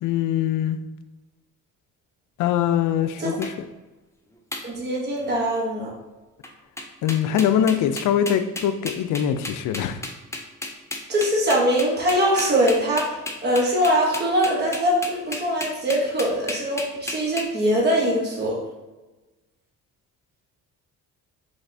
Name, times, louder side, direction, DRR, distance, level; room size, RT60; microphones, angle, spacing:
voice 1, 0.0-0.8 2.4-3.5 7.0-10.0, left 9 dB, 65° left, 10 dB, 0.5 m, -22 dB
sound 1, 3.4-3.5 4.5-4.6 5.2-5.4 6.4-6.5 6.8-17.4, left 2 dB, 10° left, 0.5 m, -33 dB
voice 2, 4.6-5.9 11.1-18.6, equal, 30° right, -2 dB, 1.0 m, -22 dB
5.1 x 3.4 x 2.6 m, 1.1 s
cardioid pair, 115°, 33 cm